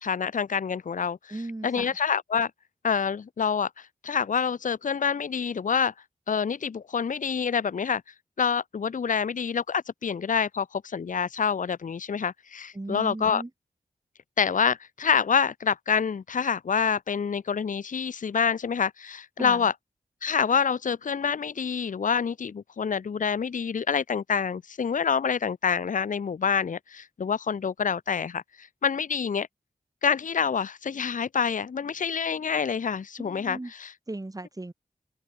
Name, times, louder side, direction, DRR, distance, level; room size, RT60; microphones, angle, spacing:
voice 1, 0.0-1.3 1.6-2.5 2.8-5.9 6.3-8.0 8.4-13.4 14.4-19.7 20.2-29.5 30.0-33.9, left 6 dB, 60° left, 0.6 m, -27 dB
voice 2, 1.3-2.0 12.7-13.5 19.4-19.7 33.2-33.7 34.1-34.7, right 2 dB, 25° right, 1.7 m, -37 dB
cardioid pair, 50°, 15 cm